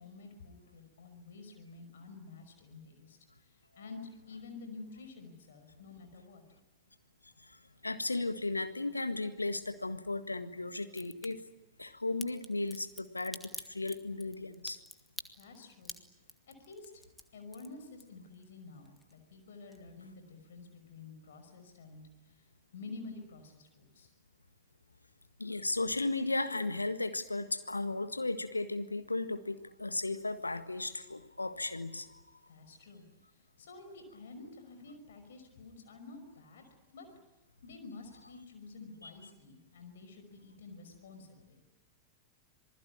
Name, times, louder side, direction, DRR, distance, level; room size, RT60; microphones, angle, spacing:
voice 1, 0.0-6.4 15.3-16.0 16.5-17.1 17.3-24.1 32.5-36.6 36.9-37.1 37.6-41.6, left 3 dB, 60° left, 7 dB, 5.7 m, -50 dB
voice 2, 7.4-11.4 11.8-14.8 25.4-32.4, left 2 dB, 80° left, 10 dB, 1.6 m, -35 dB
Crack, 10.9-11.3 12.2-18.4 18.8-19.4 19.7-19.8, left 1 dB, 5° left, 1.8 m, -47 dB
27.0 x 20.0 x 9.8 m, 0.96 s
figure-of-eight pair, 90°, 0 cm